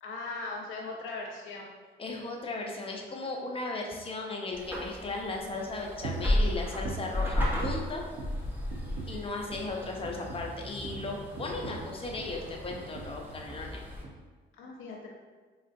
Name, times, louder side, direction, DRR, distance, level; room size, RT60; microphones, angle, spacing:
voice 1, 0.0-1.7 14.6-15.1, left 3 dB, 85° left, -1 dB, 0.6 m, -39 dB
voice 2, 2.0-8.0 9.1-13.8, left 2 dB, 30° left, 0 dB, 0.5 m, -36 dB
sound 1, 4.5-14.0, left 1 dB, 10° right, 0.7 m, -34 dB
sound 2, 6.0-6.4 6.8-8.4 8.7-9.2 9.5-9.7 10.0-12.4 12.7-13.2 13.5-13.7 14.0-14.2, right 3 dB, 70° right, 0.6 m, -40 dB
3.7 x 2.4 x 2.5 m, 1.4 s
cardioid pair, 90°, 20 cm